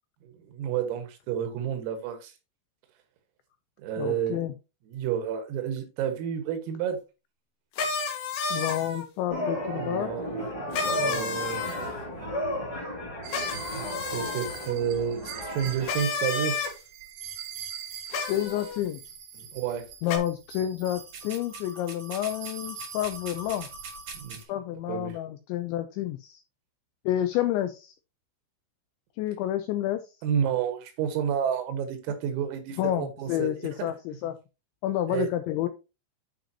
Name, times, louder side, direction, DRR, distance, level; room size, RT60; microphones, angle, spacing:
voice 1, 0.2-2.3 3.8-4.4 4.9-7.0 9.8-10.4 10.8-11.6 13.5-13.8 14.1-16.6 19.4-19.9 24.1-24.4 24.9-25.2 30.2-33.9 35.1-35.3, right 8 dB, 80° right, 4.2 m, -30 dB
voice 2, 4.0-4.5 8.5-10.1 11.0-11.2 18.3-19.2 20.0-23.7 24.5-26.4 27.1-27.9 29.2-30.1 32.8-34.4 34.8-35.7, left 12 dB, 90° left, 2.6 m, -29 dB
sound 1, 7.8-9.1 10.7-11.9 13.3-14.7 15.8-16.7 18.1-18.8 20.1-20.2, left 4 dB, 65° left, 3.5 m, -31 dB
sound 2, 9.3-16.0, equal, 25° left, 0.7 m, -34 dB
sound 3, 13.2-24.4, right 6 dB, 55° right, 2.4 m, -42 dB
11.5 x 5.2 x 2.9 m
omnidirectional pair, 6.0 m